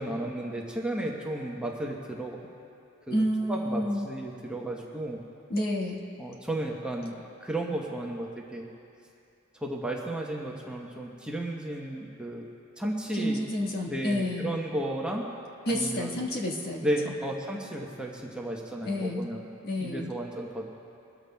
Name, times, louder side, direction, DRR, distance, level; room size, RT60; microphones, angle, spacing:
voice 1, 0.0-2.4 3.1-5.2 6.2-8.7 9.5-12.4 12.8-13.4 13.9-15.3 15.7-16.3 16.8-19.5 19.8-20.7, right 1 dB, 5° right, -2 dB, 0.9 m, -33 dB
voice 2, 3.1-4.0 5.5-6.0 13.1-14.5 15.7-17.1 18.8-19.2 19.6-20.1, left 1 dB, 50° left, -1 dB, 1.5 m, -29 dB
22.5 x 13.5 x 2.3 m, 2.6 s
head